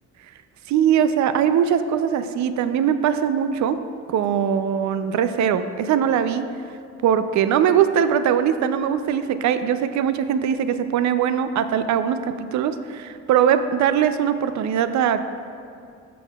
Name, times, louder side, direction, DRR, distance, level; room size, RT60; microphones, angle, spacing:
voice 1, 0.7-3.8 4.1-6.4 7.0-15.2, right 8 dB, 70° right, 11 dB, 0.5 m, -21 dB
12.5 x 6.3 x 2.3 m, 2.4 s
cardioid pair, 90°, 30 cm